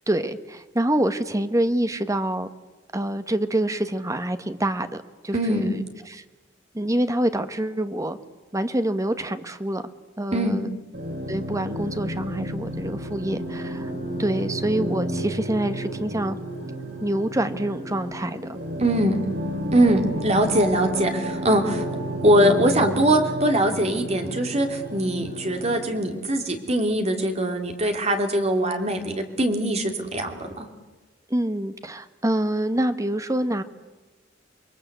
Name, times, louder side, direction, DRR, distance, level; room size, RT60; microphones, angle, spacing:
voice 1, 0.1-2.5 2.9-5.0 5.2-5.8 6.1-6.2 6.7-8.2 8.5-9.8 10.2-10.7 11.3-13.9 14.2-16.4 17.0-18.6 31.3-33.6, right 1 dB, 20° right, 10 dB, 1.2 m, -26 dB
voice 2, 5.3-5.7 10.3-10.6 18.8-19.2 19.7-21.8 22.2-30.7, right 1 dB, 35° right, 5 dB, 3.0 m, -22 dB
sound 1, 10.9-26.2, right 1 dB, 70° right, 7.0 m, -31 dB
28.0 x 22.0 x 8.1 m, 1.2 s
head